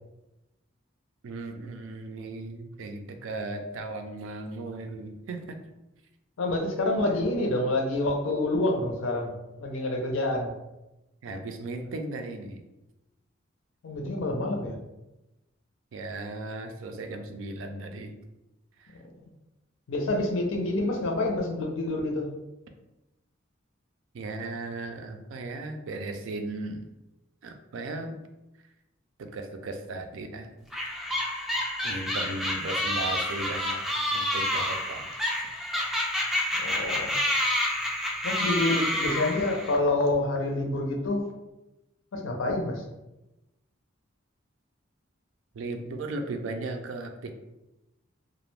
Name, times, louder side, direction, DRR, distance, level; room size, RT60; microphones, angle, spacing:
voice 1, 1.2-5.6 11.2-12.6 15.9-18.2 18.8-19.0 24.1-26.9 27.4-28.2 29.2-30.5 31.8-35.1 45.5-47.3, right 2 dB, 75° right, 5 dB, 0.4 m, -36 dB
voice 2, 6.4-10.5 13.8-14.8 19.9-22.3 36.6-37.1 38.2-41.3 42.1-42.8, left 2 dB, 80° left, 2 dB, 0.5 m, -27 dB
sound 1, 30.7-39.8, left 1 dB, ahead, 0.3 m, -29 dB
2.4 x 2.1 x 3.1 m, 0.98 s
head